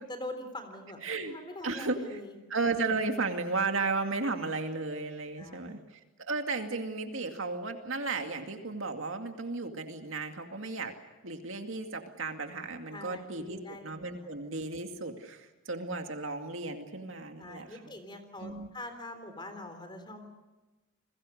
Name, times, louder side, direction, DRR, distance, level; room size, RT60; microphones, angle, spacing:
voice 1, 0.1-2.3 5.4-5.8 12.9-14.3 17.4-20.5, left 1 dB, 20° left, 7 dB, 3.6 m, -44 dB
voice 2, 1.0-1.4 1.6-2.2 2.5-10.9 11.2-17.8 18.4-18.7, right 3 dB, 70° right, 5 dB, 2.3 m, -34 dB
30.0 x 22.0 x 6.6 m, 1.1 s
head